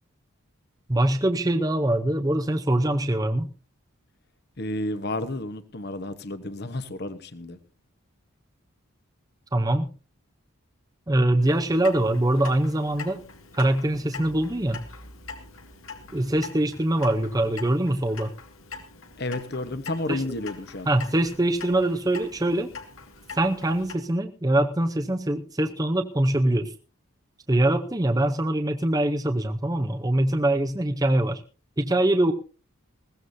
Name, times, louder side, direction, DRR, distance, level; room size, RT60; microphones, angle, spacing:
voice 1, 0.9-3.5 9.5-9.9 11.1-13.2 13.5-14.8 16.1-18.3 20.1-20.3 20.9-22.7 23.3-26.7 27.5-31.4 31.8-32.3, right 1 dB, 15° right, 5 dB, 0.7 m, -23 dB
voice 2, 4.6-7.6 19.2-20.9, left 2 dB, 45° left, 12 dB, 1.1 m, -31 dB
Clock, 11.4-23.9, left 4 dB, 70° left, 2.1 m, -43 dB
20.5 x 16.5 x 2.7 m, 0.35 s
head